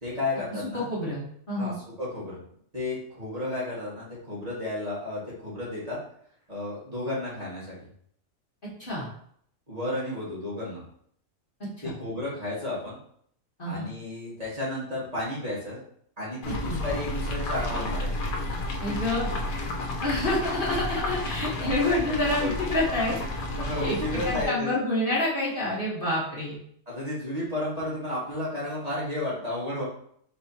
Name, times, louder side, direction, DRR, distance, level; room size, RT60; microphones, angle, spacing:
voice 1, 0.0-0.9 1.6-2.4 2.7-6.0 6.5-7.9 9.7-10.8 11.8-13.0 13.6-15.8 16.2-18.2 21.6-21.8 22.4-22.6 23.6-24.8 26.9-29.8, left 1 dB, 30° right, -8 dB, 1.8 m, -32 dB
voice 2, 0.7-1.8 8.8-9.1 11.8-11.9 13.6-13.9 16.5-16.8 18.8-19.3 20.0-23.2 23.8-26.6, left 1 dB, 40° left, -6 dB, 1.4 m, -28 dB
sound 1, 16.4-24.4, left 1 dB, 75° left, 1.2 m, -31 dB
4.4 x 4.2 x 2.8 m, 0.63 s
omnidirectional pair, 1.5 m